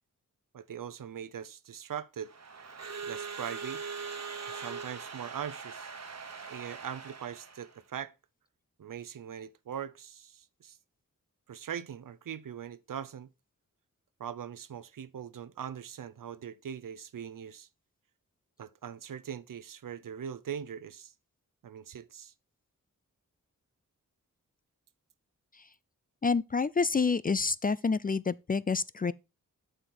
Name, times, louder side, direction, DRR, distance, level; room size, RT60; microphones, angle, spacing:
voice 1, 0.5-2.3 3.0-3.8 4.5-5.9 6.5-8.1 8.8-10.8 11.5-13.3 14.2-17.7 18.6-21.1 21.6-22.3, right 8 dB, 70° right, 0.7 m, -41 dB
Crowd / Alarm, 2.2-7.8, right 5 dB, 50° right, 1.2 m, -41 dB
voice 2, 26.2-29.1, left 4 dB, 25° left, 0.4 m, -28 dB
7.7 x 5.1 x 4.3 m
cardioid pair, 40°, 33 cm